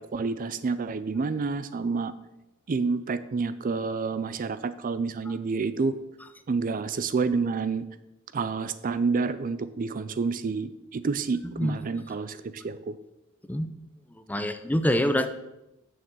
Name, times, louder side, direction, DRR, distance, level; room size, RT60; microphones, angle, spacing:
voice 1, 0.0-2.1 2.7-5.9 6.5-7.8 8.3-13.0, right 4 dB, 40° right, 13 dB, 0.4 m, -29 dB
voice 2, 14.3-15.3, equal, 10° left, 9 dB, 0.6 m, -25 dB
6.7 x 6.6 x 7.5 m, 0.92 s
head